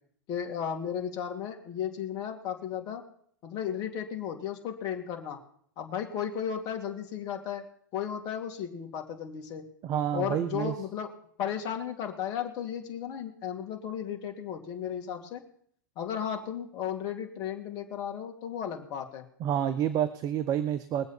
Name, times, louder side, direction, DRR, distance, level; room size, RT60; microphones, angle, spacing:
voice 1, 0.3-3.0 3.4-5.4 5.8-7.6 7.9-9.6 10.1-11.1 11.4-15.4 16.0-19.2, left 8 dB, 40° left, 3 dB, 2.6 m, -34 dB
voice 2, 9.8-10.7 19.4-21.1, right 10 dB, 35° right, 12 dB, 0.8 m, -28 dB
22.5 x 7.9 x 4.3 m, 0.62 s
figure-of-eight pair, 100°, 11 cm